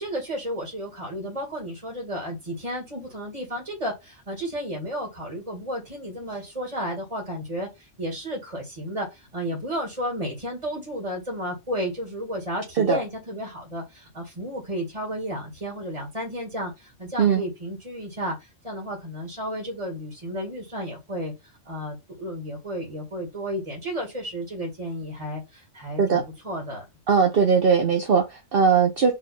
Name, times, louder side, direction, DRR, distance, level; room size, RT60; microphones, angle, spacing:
voice 1, 0.0-21.3 21.6-26.8, equal, 30° right, 2.2 m, -32 dB
voice 2, 27.1-29.1, right 6 dB, 50° right, 1.1 m, -19 dB
5.6 x 3.2 x 5.3 m
omnidirectional pair, 1.2 m